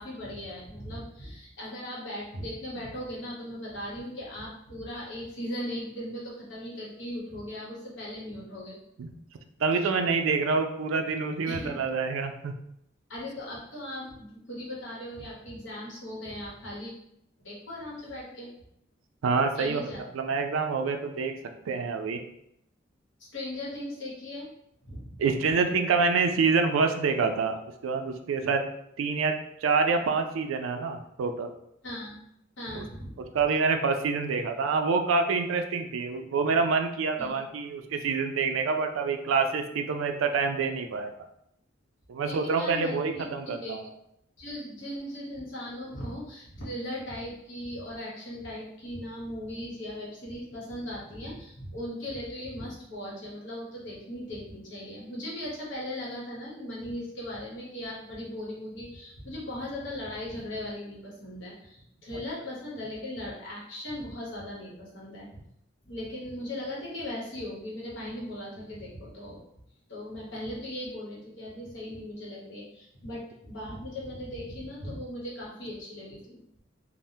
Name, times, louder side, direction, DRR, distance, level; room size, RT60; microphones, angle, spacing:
voice 1, 0.0-8.8 11.4-11.8 13.1-16.9 17.4-18.5 19.5-20.0 23.3-24.5 24.8-25.2 31.8-32.2 32.6-33.1 37.2-37.3 42.2-43.8 44.4-65.4 65.8-69.4 69.9-76.6, left 1 dB, 65° left, -5 dB, 1.0 m, -38 dB
voice 2, 9.6-12.5 19.2-19.9 20.1-21.3 21.7-22.2 25.2-27.6 27.8-28.6 29.0-29.3 29.6-31.5 32.7-32.8 33.3-41.1 42.1-43.8, right 4 dB, 85° right, 6 dB, 0.4 m, -26 dB
3.3 x 2.0 x 2.7 m, 0.77 s
head